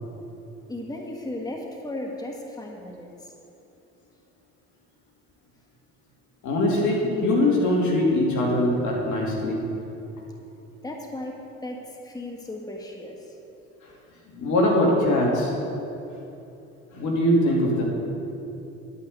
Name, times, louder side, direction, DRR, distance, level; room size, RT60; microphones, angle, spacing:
voice 1, 0.7-3.3 10.8-13.4, left 1 dB, 10° left, 1 dB, 1.4 m, -36 dB
voice 2, 6.4-9.6 14.3-15.5 16.9-17.8, left 1 dB, 65° left, -2 dB, 2.8 m, -22 dB
11.0 x 5.7 x 7.9 m, 2.9 s
hypercardioid pair, 65°, 32 cm